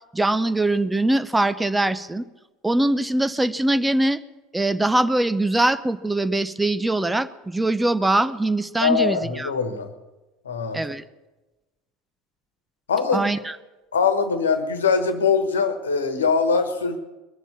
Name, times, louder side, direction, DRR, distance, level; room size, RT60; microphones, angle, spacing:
voice 1, 0.1-2.2 2.6-4.2 4.5-9.5 10.7-11.0 13.1-13.6, right 2 dB, 10° right, 12 dB, 0.7 m, -22 dB
voice 2, 8.8-9.9 10.4-10.8 12.9-13.3 13.9-17.0, left 5 dB, 75° left, 9 dB, 1.3 m, -22 dB
21.0 x 7.3 x 8.6 m, 1.1 s
figure-of-eight pair, 70°, 0 cm